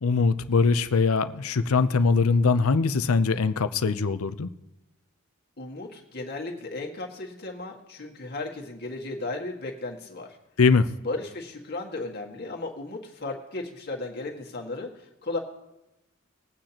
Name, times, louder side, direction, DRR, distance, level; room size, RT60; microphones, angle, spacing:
voice 1, 0.0-4.5 10.6-10.8, left 4 dB, 75° left, 11 dB, 0.6 m, -22 dB
voice 2, 5.6-10.4 11.0-14.9 15.2-15.4, left 2 dB, 50° left, 0 dB, 1.9 m, -35 dB
21.0 x 8.9 x 2.9 m, 0.94 s
head